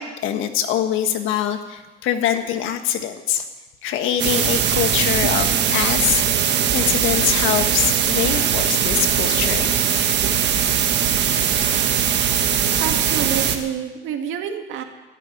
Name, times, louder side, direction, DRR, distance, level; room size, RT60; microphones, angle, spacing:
voice 1, 0.0-3.5 3.8-10.2 11.5-11.9, left 10 dB, 85° left, 7 dB, 1.5 m, -24 dB
sound 1, 4.2-13.6, right 8 dB, 60° right, 1.5 m, -20 dB
voice 2, 12.8-14.8, right 8 dB, 80° right, 5 dB, 2.0 m, -28 dB
14.5 x 8.3 x 10.0 m, 1.2 s
cardioid pair, 105°, 20 cm